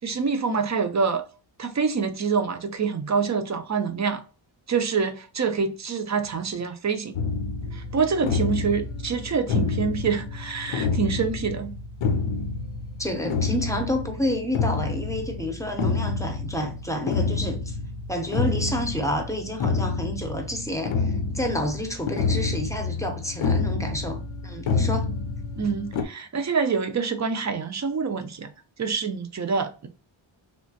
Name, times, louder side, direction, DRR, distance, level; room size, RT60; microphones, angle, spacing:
voice 1, 0.0-1.2 1.6-4.2 4.7-7.2 7.7-11.8 25.6-28.5 28.8-29.9, right 5 dB, 40° right, 0.4 m, -26 dB
sound 1, 7.1-26.0, left 4 dB, 70° left, 0.6 m, -28 dB
voice 2, 13.0-17.8 18.1-25.1, equal, 5° left, 0.6 m, -29 dB
3.2 x 2.9 x 2.7 m
wide cardioid pair, 135°, 48 cm